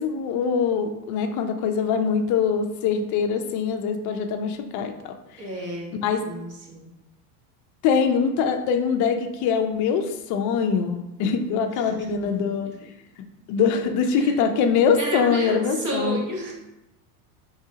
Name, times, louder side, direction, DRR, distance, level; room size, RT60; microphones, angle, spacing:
voice 1, 0.0-5.1 6.0-6.2 7.8-12.7 13.5-16.2, left 6 dB, 40° left, 6 dB, 0.5 m, -23 dB
voice 2, 5.4-5.9 6.2-6.9 11.3-12.2 12.4-12.9 14.1-14.3 15.0-16.5, right 1 dB, 40° right, -1 dB, 1.2 m, -32 dB
4.8 x 3.1 x 2.8 m, 0.91 s
supercardioid pair, 130°, 48 cm